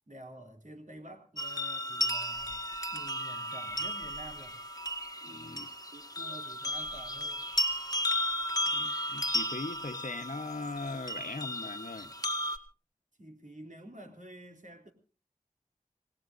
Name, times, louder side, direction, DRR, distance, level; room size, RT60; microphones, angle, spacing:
voice 1, 0.1-2.6 2.9-4.6 5.2-5.6 5.9-7.4 13.2-14.9, right 1 dB, 60° right, 5 dB, 3.2 m, -49 dB
sound 1, 1.4-12.6, left 1 dB, 25° left, 1.8 m, -34 dB
voice 2, 5.2-5.7 8.7-12.1, left 3 dB, 65° left, 10 dB, 1.0 m, -40 dB
27.0 x 19.0 x 2.6 m, 0.35 s
wide cardioid pair, 40°, 14 cm